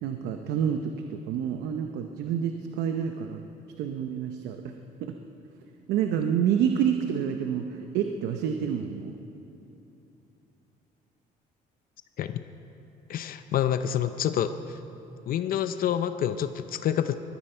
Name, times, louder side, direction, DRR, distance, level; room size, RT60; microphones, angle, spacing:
voice 1, 0.0-3.4 3.8-4.7 5.0-5.1 5.9-9.2, right 8 dB, 85° right, 5 dB, 0.8 m, -28 dB
voice 2, 13.1-14.8 15.3-17.1, left 10 dB, 60° left, 10 dB, 0.6 m, -28 dB
20.5 x 13.5 x 4.5 m, 2.9 s
cardioid pair, 110°, 17 cm